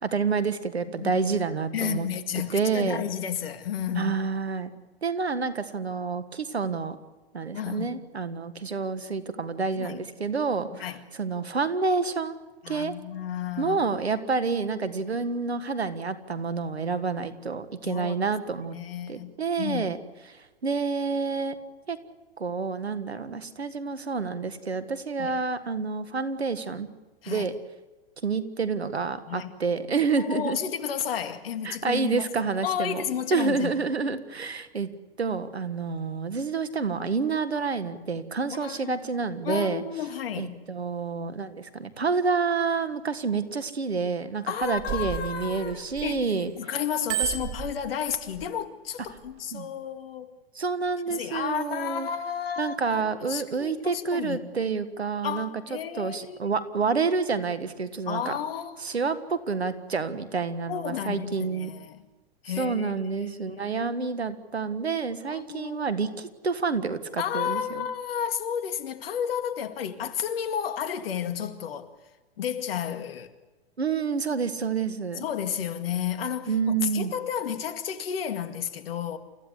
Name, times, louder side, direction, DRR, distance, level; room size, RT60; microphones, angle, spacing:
voice 1, 0.0-2.1 2.5-3.0 4.0-4.7 5.0-7.0 7.3-12.4 12.7-12.9 13.6-18.8 19.1-20.0 20.3-21.6 21.9-22.0 22.4-26.9 27.3-27.5 28.2-30.6 31.6-33.0 33.3-34.9 35.2-39.8 40.4-46.5 49.5-49.7 50.6-52.1 52.6-58.4 58.8-61.7 62.6-67.8 73.8-75.3 76.5-77.1, right 4 dB, 90° right, 1.8 m, -28 dB
voice 2, 1.7-4.2 7.5-7.9 9.7-10.0 10.7-11.0 12.6-13.8 17.8-18.2 18.6-19.3 19.6-19.9 25.2-25.4 27.2-27.5 29.3-29.5 30.2-33.8 38.6-39.0 39.4-40.6 44.5-46.3 46.6-50.3 51.1-54.5 55.2-56.4 58.1-58.8 60.7-62.0 62.4-63.8 65.3-65.9 67.2-71.9 72.4-73.3 75.2-79.2, left 8 dB, 65° left, 2.2 m, -32 dB
Bicycle bell, 44.5-46.4 46.8-48.5 49.1-49.3, right 10 dB, 40° right, 2.7 m, -33 dB
29.0 x 15.5 x 8.2 m
hypercardioid pair, 110°, 31 cm